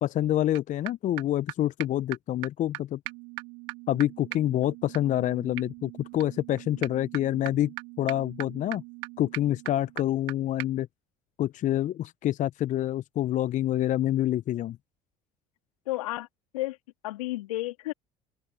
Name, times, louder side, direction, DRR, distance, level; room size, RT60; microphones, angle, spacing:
voice 1, 0.0-3.0 3.9-8.8 9.2-10.9 11.4-14.8, left 13 dB, 45° left, 0.7 m, -27 dB
sound 1, 0.5-0.6 0.9-1.0 1.2-1.3 1.5-1.6 1.8-1.9 2.1-2.2 2.4-2.5 2.7-2.8 3.0-10.3 10.6-10.7, right 27 dB, 70° right, 1.6 m, -40 dB
voice 2, 15.9-16.3 16.5-16.8 17.0-17.9, left 17 dB, 80° left, 2.8 m, -31 dB
open air
hypercardioid pair, 65°, 18 cm